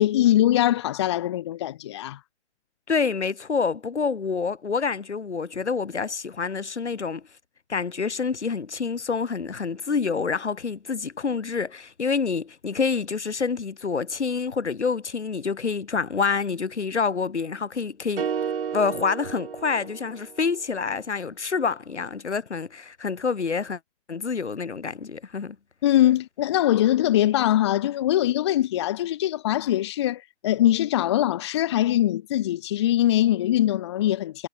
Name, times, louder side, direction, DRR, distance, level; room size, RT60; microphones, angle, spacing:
voice 1, 0.0-2.2 25.8-34.5, left 13 dB, 25° left, 1.1 m, -22 dB
voice 2, 2.9-7.2 7.7-18.3 18.7-23.8 24.1-25.6, left 5 dB, 75° left, 7.1 m, -27 dB
sound 1, 18.2-20.5, right 7 dB, 55° right, 2.4 m, -32 dB
hypercardioid pair, 155°, 35 cm